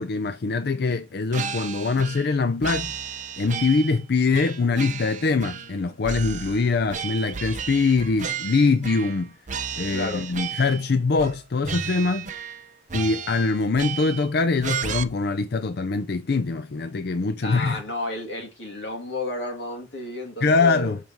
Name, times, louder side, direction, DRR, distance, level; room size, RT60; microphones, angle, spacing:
voice 1, 0.0-3.0 3.4-9.3 9.8-12.3 12.9-17.8 20.4-21.0, left 4 dB, 60° left, 0.5 m, -23 dB
sound 1, 1.3-2.3 2.6-4.0 4.3-5.8 6.0-9.2 9.5-10.8 11.2-11.4 11.6-12.6 12.9-14.3 14.6-15.0, right 7 dB, 40° right, 0.7 m, -33 dB
voice 2, 9.9-10.2 17.4-21.0, left 2 dB, 80° left, 2.5 m, -32 dB
6.6 x 5.4 x 4.5 m
head